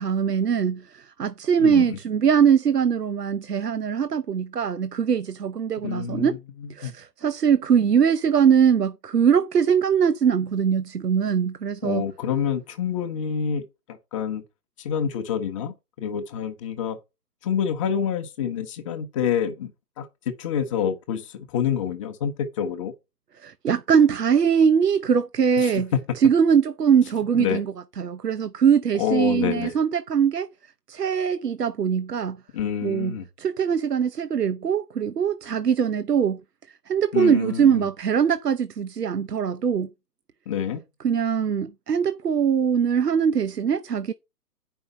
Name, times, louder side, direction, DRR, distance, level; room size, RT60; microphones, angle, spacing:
voice 1, 0.0-6.4 6.7-12.0 23.4-30.5 30.9-32.4 32.8-36.4 36.9-39.9 41.0-44.1, right 7 dB, 80° right, 0.8 m, -22 dB
voice 2, 1.6-2.0 5.8-6.9 11.8-14.4 14.8-17.0 17.4-19.7 20.0-20.1 20.4-22.9 25.6-25.7 27.3-27.6 29.0-29.7 32.5-33.3 37.1-37.9 40.5-40.8, left 8 dB, 20° left, 1.0 m, -27 dB
9.4 x 5.6 x 5.3 m
figure-of-eight pair, 135°, 47 cm